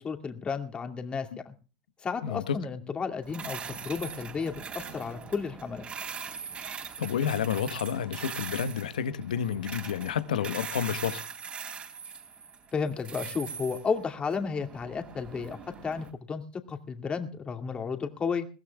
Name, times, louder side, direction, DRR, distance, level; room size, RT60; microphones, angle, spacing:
voice 1, 0.0-1.5 2.0-5.8 12.7-15.6 15.8-16.4 16.7-18.5, left 5 dB, 25° left, 2.5 m, -33 dB
voice 2, 2.2-2.6 7.0-11.2, left 8 dB, 85° left, 1.2 m, -30 dB
sound 1, 3.2-16.1, right 6 dB, 30° right, 3.7 m, -41 dB
22.5 x 16.0 x 2.3 m
hypercardioid pair, 100°, 4 cm